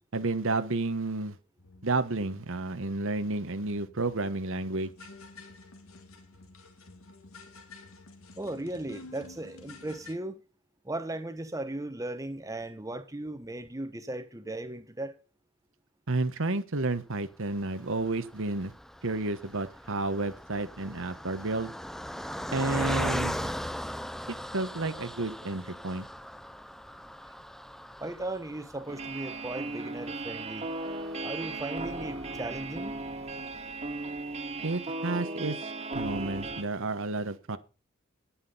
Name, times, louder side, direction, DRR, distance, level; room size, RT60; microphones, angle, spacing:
voice 1, 0.1-1.4 1.8-4.9 16.1-18.7 19.0-21.7 22.5-23.5 24.3-26.0 34.6-37.6, right 2 dB, 65° right, 1.2 m, -31 dB
sound 1, 1.6-10.1, left 3 dB, 75° left, 2.4 m, -51 dB
voice 2, 8.4-10.4 10.8-15.2 28.0-30.7 31.2-33.0, right 1 dB, 15° right, 1.2 m, -37 dB
Car passing by, 17.6-33.0 33.6-33.7 33.9-34.1, equal, ahead, 0.5 m, -39 dB
sound 2, 28.9-36.6, right 2 dB, 30° right, 1.9 m, -36 dB
10.0 x 9.9 x 5.6 m
head